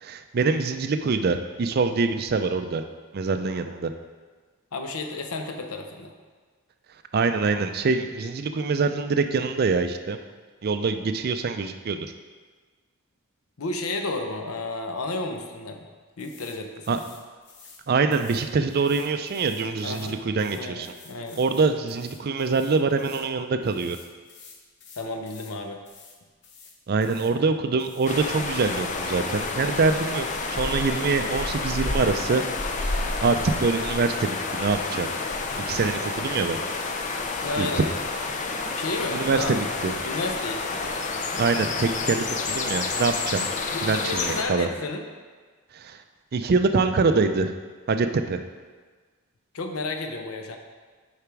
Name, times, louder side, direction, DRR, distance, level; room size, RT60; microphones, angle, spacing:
voice 1, 0.0-2.8 3.1-3.9 7.1-10.2 10.6-12.1 16.9-17.0 17.9-20.9 21.4-24.0 26.9-32.4 32.8-35.1 35.7-36.6 37.6-37.8 39.1-39.9 41.4-43.5 43.8-44.7 45.7-46.0 46.3-47.5 47.9-48.4, right 4 dB, 45° right, 8 dB, 0.4 m, -24 dB
voice 2, 4.7-6.1 13.6-15.8 16.2-17.0 19.8-20.2 20.5-21.4 25.0-25.8 37.4-37.9 38.7-39.5 40.0-40.6 43.7-45.0 49.5-50.6, left 2 dB, 75° left, 5 dB, 0.7 m, -32 dB
sound 1, 16.2-16.6 16.8-17.8 18.1-23.3 23.6-25.6 25.8-26.2 26.4-27.3 27.8-28.2, left 5 dB, 50° left, 0.9 m, -50 dB
sound 2, 28.1-44.4, left 3 dB, 35° left, 0.4 m, -29 dB
6.8 x 4.9 x 4.6 m, 1.5 s
head